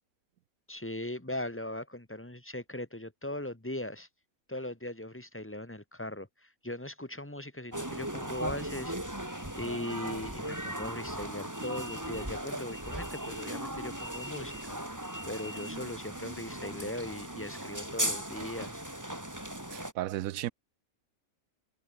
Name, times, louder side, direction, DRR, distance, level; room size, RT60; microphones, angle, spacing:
voice 1, 0.7-4.1 4.5-8.9 9.2-18.8, left 1 dB, 10° left, 2.0 m, -39 dB
sound 1, 7.7-19.9, right 1 dB, 10° right, 3.9 m, -37 dB
voice 2, 19.7-20.5, right 13 dB, 80° right, 1.0 m, -34 dB
omnidirectional pair, 1.5 m